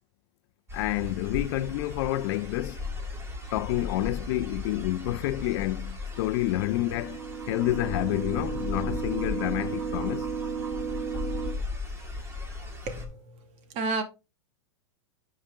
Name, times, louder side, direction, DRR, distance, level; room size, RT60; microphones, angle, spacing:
voice 1, 0.7-2.8 3.5-7.2 7.5-10.3, left 16 dB, 60° left, 0.5 m, -29 dB
sound 1, 0.7-13.0, left 3 dB, 15° right, 2.5 m, -37 dB
sound 2, 6.3-11.5, right 6 dB, 70° right, 3.1 m, -34 dB
voice 2, 12.8-13.1 13.7-14.0, right 3 dB, 45° right, 2.3 m, -29 dB
10.0 x 4.9 x 3.7 m
hypercardioid pair, 125°, 16 cm